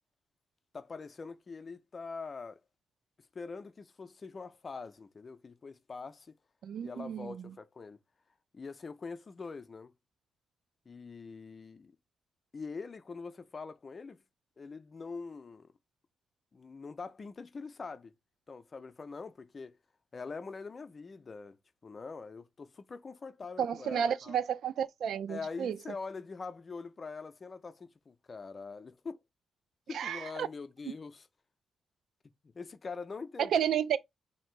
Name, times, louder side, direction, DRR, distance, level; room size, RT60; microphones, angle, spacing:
voice 1, 0.7-2.6 3.3-6.3 6.8-8.0 8.5-9.9 10.9-11.9 12.5-14.2 14.6-15.7 16.5-18.1 18.5-19.8 20.1-21.6 21.8-24.4 25.3-29.2 29.9-31.3 32.4-33.6, left 4 dB, 40° left, 0.5 m, -44 dB
voice 2, 6.6-7.5 23.6-25.8 29.9-30.5 33.5-34.0, right 8 dB, 75° right, 0.3 m, -32 dB
2.9 x 2.7 x 4.4 m
cardioid pair, 80°, 0 cm